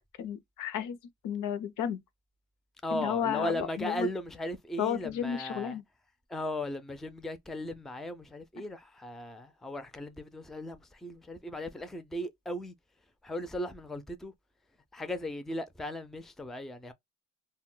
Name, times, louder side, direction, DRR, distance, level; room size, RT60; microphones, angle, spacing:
voice 1, 0.2-1.0 1.2-2.0 2.9-4.1 4.8-5.8, left 9 dB, 85° left, 0.5 m, -32 dB
voice 2, 2.8-5.8 6.3-12.7 13.2-14.3 14.9-16.9, left 1 dB, ahead, 0.3 m, -37 dB
2.1 x 2.1 x 3.6 m
cardioid pair, 90°, 30 cm